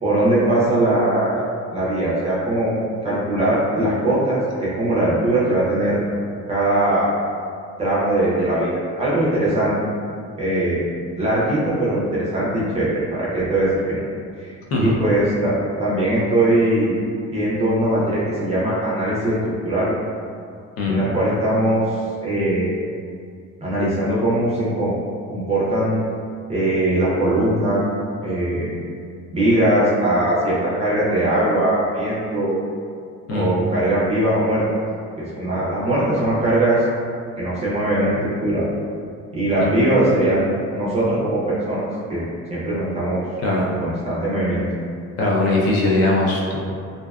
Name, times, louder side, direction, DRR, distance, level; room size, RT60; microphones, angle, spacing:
voice 1, 0.0-1.4 1.7-2.7 3.0-6.0 6.5-7.1 7.8-9.7 10.4-10.8 11.2-14.0 14.4-14.5 14.8-15.5 15.8-17.0 17.3-19.9 20.9-21.8 22.2-22.7 23.6-24.9 25.3-26.0 26.5-27.8 28.2-28.7 29.3-32.6 33.3-34.6 35.2-36.8 37.4-38.6 39.3-42.2 42.5-43.2 43.6-44.6, right 1 dB, 20° right, -8 dB, 0.4 m, -20 dB
voice 2, 33.3-33.6 39.6-39.9 43.4-43.7 45.2-46.6, left 2 dB, 55° left, -4 dB, 0.5 m, -20 dB
2.6 x 2.1 x 2.3 m, 2.3 s
cardioid pair, 175°, 29 cm